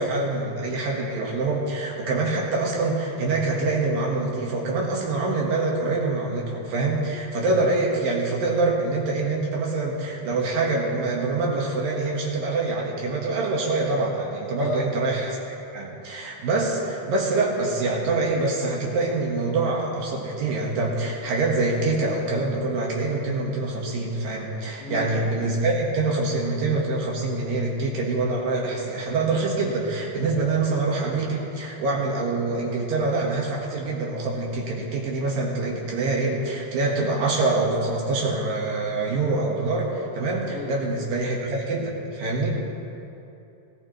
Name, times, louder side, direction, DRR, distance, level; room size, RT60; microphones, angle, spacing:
voice 1, 0.0-15.3 15.7-42.5, right 3 dB, 65° right, -2 dB, 2.8 m, -25 dB
voice 2, 14.6-14.9 24.8-25.1 30.3-30.5 40.5-40.8, left 5 dB, 85° left, 3 dB, 3.5 m, -33 dB
19.5 x 15.5 x 3.1 m, 2.8 s
omnidirectional pair, 5.0 m